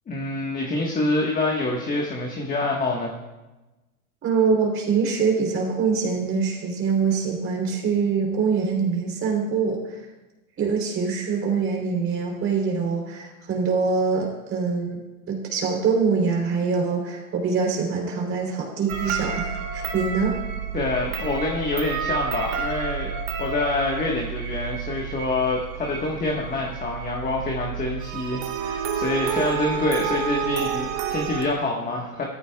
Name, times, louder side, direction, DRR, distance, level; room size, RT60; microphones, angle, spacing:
voice 1, 0.1-3.1 20.7-23.1 23.4-32.2, left 2 dB, 20° left, -1 dB, 1.5 m, -26 dB
voice 2, 4.2-10.0 10.6-15.0 15.3-20.4, right 5 dB, 30° right, -1 dB, 3.5 m, -24 dB
sound 1, 18.9-31.4, right 7 dB, 50° right, 1.9 m, -30 dB
15.5 x 14.0 x 2.4 m, 1.1 s
hypercardioid pair, 120°, 43 cm